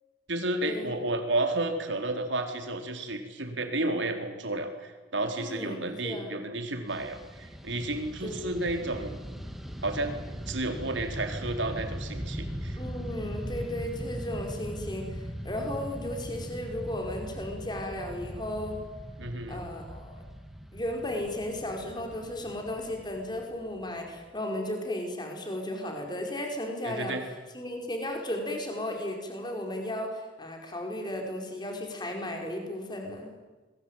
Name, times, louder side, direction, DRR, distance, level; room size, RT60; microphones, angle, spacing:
voice 1, 0.3-9.2 9.8-12.8 19.2-19.6 26.8-27.2, right 2 dB, 75° right, 5 dB, 4.1 m, -32 dB
voice 2, 5.4-6.3 8.2-8.5 12.8-18.8 19.5-20.2 20.7-27.2 27.5-33.4, left 1 dB, 20° left, 2 dB, 5.1 m, -35 dB
Fixed-wing aircraft airplane, 6.9-24.3, equal, ahead, 2.3 m, -40 dB
27.0 x 22.5 x 9.1 m, 1.2 s
head